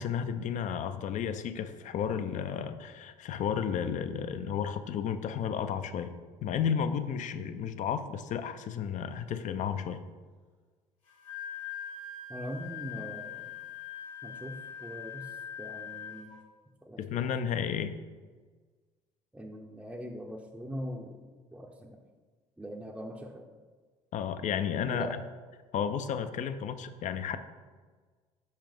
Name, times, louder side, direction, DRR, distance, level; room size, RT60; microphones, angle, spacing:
voice 1, 0.0-6.1 6.4-10.0 17.0-17.9 24.1-25.1 25.7-27.4, left 8 dB, 50° left, 10 dB, 0.5 m, -32 dB
Wind instrument woodwind instrument, 11.1-16.4, left 8 dB, 85° left, 0.9 m, -42 dB
voice 2, 12.3-13.5 14.2-16.3 16.8-17.0 19.3-21.2 21.5-22.0 22.6-23.5 24.9-25.2, equal, 5° right, 1 dB, 0.6 m, -41 dB
5.5 x 4.9 x 3.5 m, 1.4 s
hypercardioid pair, 55°, 16 cm